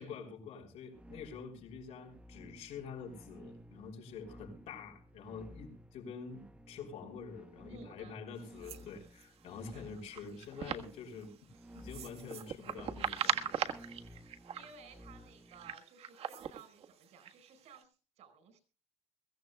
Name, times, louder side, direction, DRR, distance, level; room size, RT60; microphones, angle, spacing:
voice 1, 0.0-13.7, left 5 dB, 80° left, 2 dB, 5.5 m, -47 dB
sound 1, 0.9-15.7, equal, 10° right, 1.0 m, -55 dB
voice 2, 7.7-8.7 9.7-9.9 14.2-18.6, right 5 dB, 85° right, 10 dB, 4.6 m, -57 dB
Bats in Coldfall Wood, 8.4-17.8, right 8 dB, 60° right, 1.5 m, -40 dB
23.0 x 15.5 x 2.3 m, 0.35 s
cardioid pair, 170°, 11 cm